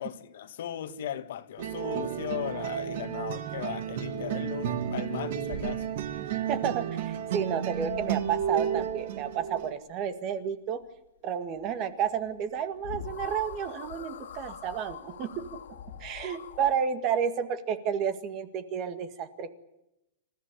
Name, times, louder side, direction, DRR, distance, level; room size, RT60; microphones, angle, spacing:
voice 1, 0.0-5.9, left 10 dB, 60° left, 1.8 m, -37 dB
sound 1, 1.6-9.7, right 9 dB, 50° right, 2.3 m, -32 dB
voice 2, 6.5-10.8 11.2-15.3 16.0-19.5, right 8 dB, 25° right, 1.9 m, -31 dB
sound 2, 7.7-9.3 12.5-12.6 12.8-16.9, left 8 dB, 85° left, 2.7 m, -44 dB
28.0 x 15.0 x 9.7 m
supercardioid pair, 170°, 0 cm